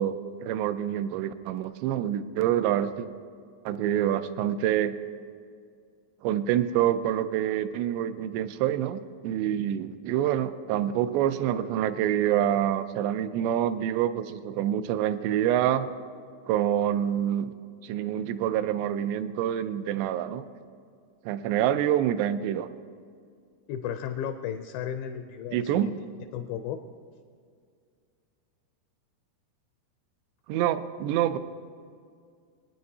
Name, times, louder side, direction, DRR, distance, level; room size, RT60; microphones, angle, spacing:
voice 1, 0.0-3.1 3.7-5.0 6.2-15.9 16.5-17.5 17.8-20.4 21.3-22.7 25.5-25.9 30.5-31.4, right 11 dB, 90° right, 11 dB, 2.7 m, -26 dB
voice 2, 23.7-25.9 26.3-26.8, left 9 dB, 85° left, 7 dB, 2.2 m, -34 dB
23.5 x 9.3 x 2.8 m, 2.2 s
omnidirectional pair, 4.8 m